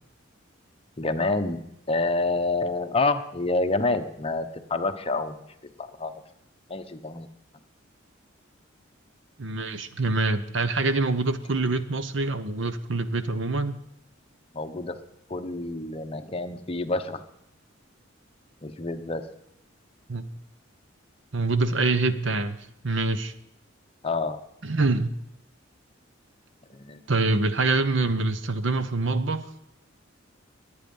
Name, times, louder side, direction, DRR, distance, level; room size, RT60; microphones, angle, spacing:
voice 1, 1.0-1.6 1.9-5.5 5.8-6.1 6.7-7.3 14.5-15.0 15.3-17.2 18.6-19.2 24.0-24.4 26.7-27.0, left 3 dB, 30° left, 8 dB, 0.9 m, -28 dB
voice 2, 9.4-13.7 20.1-20.3 21.3-22.6 22.8-23.3 24.6-25.1 27.1-29.5, right 3 dB, 65° right, 12 dB, 0.9 m, -25 dB
22.5 x 8.6 x 5.4 m, 0.79 s
head